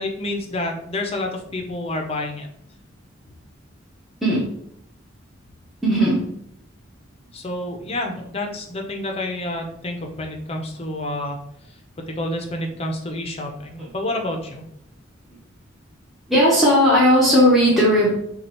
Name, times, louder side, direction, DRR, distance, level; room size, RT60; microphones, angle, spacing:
voice 1, 0.0-2.5 7.3-11.4 12.1-14.6, left 1 dB, 30° left, 3 dB, 0.6 m, -29 dB
voice 2, 5.8-6.2 16.3-18.1, equal, ahead, -8 dB, 0.9 m, -16 dB
6.3 x 2.3 x 3.0 m, 0.72 s
head